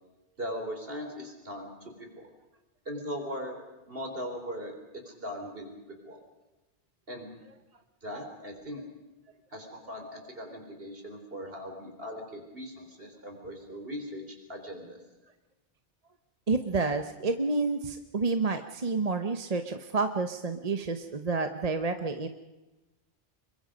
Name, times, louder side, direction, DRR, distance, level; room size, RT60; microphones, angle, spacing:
voice 1, 0.4-2.2 2.9-3.6 3.9-4.8 5.1-5.7 6.0-6.2 7.1-7.3 8.0-8.8 9.5-15.0, equal, 55° right, 3 dB, 4.3 m, -39 dB
voice 2, 16.5-22.3, right 3 dB, 35° right, 7 dB, 1.0 m, -29 dB
26.5 x 23.0 x 5.2 m, 1.1 s
omnidirectional pair, 1.2 m